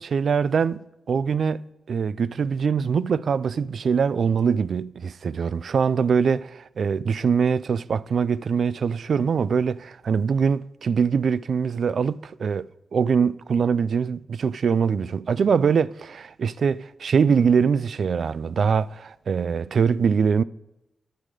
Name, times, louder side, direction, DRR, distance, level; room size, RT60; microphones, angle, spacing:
voice 1, 0.0-1.6 1.9-20.4, right 6 dB, 65° right, 0.3 m, -23 dB
10.0 x 9.0 x 4.8 m
wide cardioid pair, 130°, 0 cm